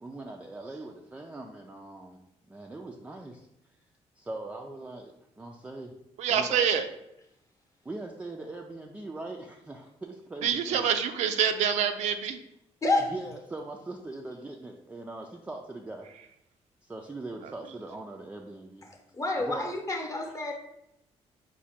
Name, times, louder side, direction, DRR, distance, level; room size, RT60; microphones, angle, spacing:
voice 1, 0.0-2.2 2.5-3.5 4.2-5.9 6.3-6.6 7.8-10.9 13.1-16.1 16.8-18.9 19.4-19.6, right 2 dB, 10° right, 1 dB, 0.3 m, -41 dB
voice 2, 6.2-6.8 10.4-12.4, right 8 dB, 80° right, 8 dB, 0.4 m, -26 dB
voice 3, 12.8-13.1 18.8-20.5, left 2 dB, 30° left, 3 dB, 0.8 m, -29 dB
4.7 x 2.2 x 4.2 m, 0.81 s
cardioid pair, 115°, 12 cm